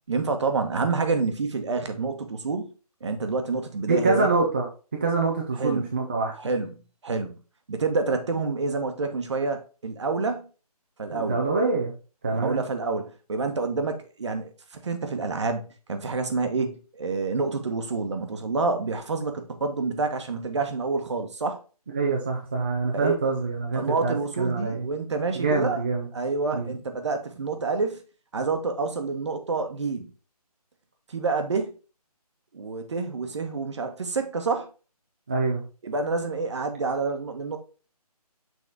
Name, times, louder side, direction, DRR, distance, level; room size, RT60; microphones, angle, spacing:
voice 1, 0.1-2.7 3.0-4.3 5.6-5.8 6.4-6.7 7.0-7.3 7.7-10.4 11.0-11.4 12.3-14.5 14.8-21.6 22.9-23.2 23.8-25.8 26.1-28.0 28.3-30.1 31.1-31.7 32.5-34.7 35.8-37.6, right 4 dB, 45° right, 1.2 m, -28 dB
voice 2, 3.9-4.7 5.0-6.3 11.1-11.9 12.2-12.6 21.9-24.9 25.3-26.1 26.5-26.8 35.3-35.6, right 3 dB, 15° right, 0.5 m, -25 dB
6.5 x 4.1 x 3.5 m
hypercardioid pair, 170°, 20 cm